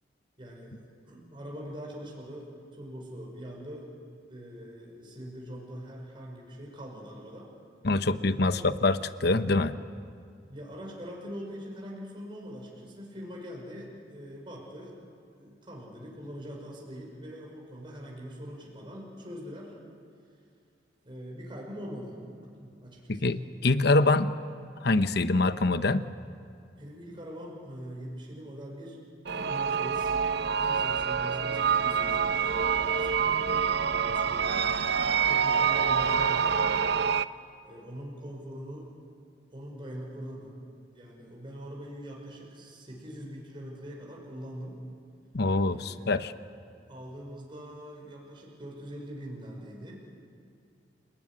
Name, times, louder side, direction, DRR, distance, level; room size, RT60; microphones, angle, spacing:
voice 1, 0.4-3.9 4.3-7.5 8.5-8.6 10.5-15.0 15.3-19.7 21.0-23.2 26.8-29.0 29.2-30.2 30.6-32.5 32.8-34.5 35.2-36.9 37.6-38.9 39.5-40.6 40.9-44.8 45.7-46.4 46.9-50.2, equal, 30° right, -2 dB, 5.6 m, -43 dB
voice 2, 7.8-9.8 23.1-24.3 24.8-26.1 45.3-46.3, left 2 dB, 60° left, 11 dB, 1.0 m, -25 dB
sound 1, 29.2-37.2, right 6 dB, 65° right, 0.7 m, -26 dB
30.0 x 18.5 x 9.9 m, 2.3 s
head